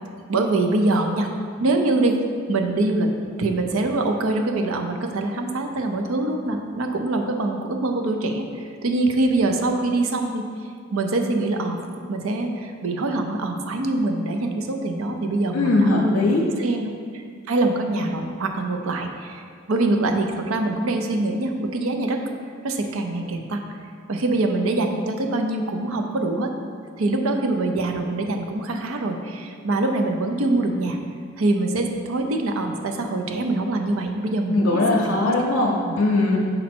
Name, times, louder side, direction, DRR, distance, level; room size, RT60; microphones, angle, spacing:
voice 1, 0.3-1.3 1.6-2.2 2.5-3.1 3.4-10.4 10.9-11.8 12.1-16.3 16.6-22.2 22.6-23.6 24.1-26.5 27.0-31.0 31.4-34.8 35.2-35.6 35.9-36.0, right 2 dB, 80° right, 4 dB, 0.5 m, -24 dB
voice 2, 15.5-16.5 34.5-36.4, left 2 dB, 80° left, -2 dB, 0.6 m, -20 dB
5.3 x 4.1 x 4.4 m, 2.1 s
head